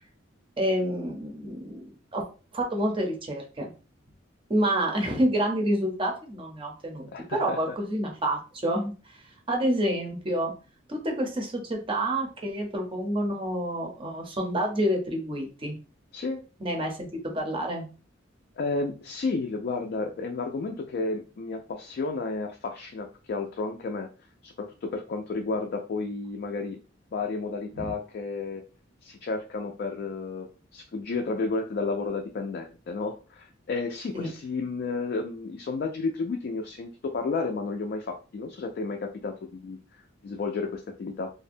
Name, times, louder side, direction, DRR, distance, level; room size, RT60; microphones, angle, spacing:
voice 1, 0.6-1.8 2.1-2.2 2.5-3.7 4.5-9.2 9.5-10.5 10.9-15.8 16.6-17.9 27.7-27.9 34.1-34.3, right 1 dB, 30° right, 2 dB, 0.6 m, -28 dB
voice 2, 7.1-7.8 16.1-16.4 18.6-24.1 24.4-26.8 27.1-28.6 29.0-39.8 40.2-41.3, left 3 dB, 50° left, 3 dB, 0.3 m, -32 dB
2.5 x 2.1 x 2.5 m, 0.34 s
head